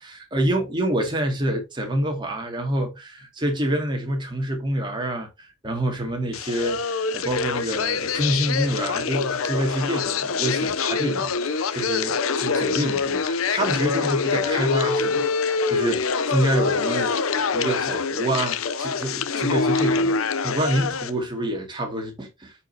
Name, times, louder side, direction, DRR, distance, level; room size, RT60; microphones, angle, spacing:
voice 1, 0.0-20.1 20.4-22.5, right 1 dB, 25° right, 2.2 m, -27 dB
sound 1, 6.3-21.1, left 5 dB, 85° left, 0.7 m, -25 dB
8.9 x 5.1 x 2.8 m
head